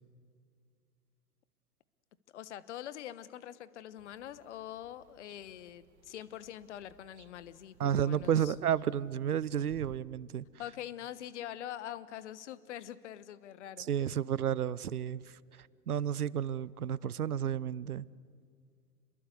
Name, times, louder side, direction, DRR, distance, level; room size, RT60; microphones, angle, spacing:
voice 1, 2.3-8.5 10.6-13.9, left 11 dB, 50° left, 1.3 m, -44 dB
sound 1, 4.0-10.0, right 12 dB, 45° right, 1.1 m, -57 dB
voice 2, 7.8-10.4 13.8-18.1, right 9 dB, 70° right, 0.8 m, -32 dB
29.0 x 22.0 x 8.2 m
figure-of-eight pair, 100°, 46 cm